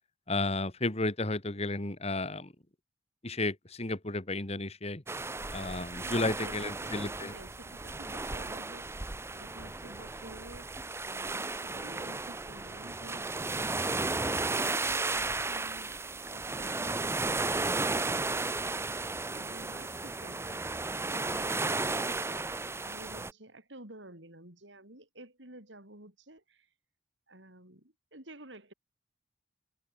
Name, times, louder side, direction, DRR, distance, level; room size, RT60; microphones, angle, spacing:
voice 1, 0.3-2.5 3.2-5.0 5.5-7.3, left 2 dB, 35° left, 2.0 m, -33 dB
sound 1, 5.1-23.3, right 3 dB, 15° right, 0.6 m, -34 dB
voice 2, 6.0-13.8 14.2-15.1 15.4-16.0 16.3-17.3 17.9-18.6 19.3-20.6 21.0-26.7 27.3-28.7, right 1 dB, 75° right, 7.1 m, -51 dB
head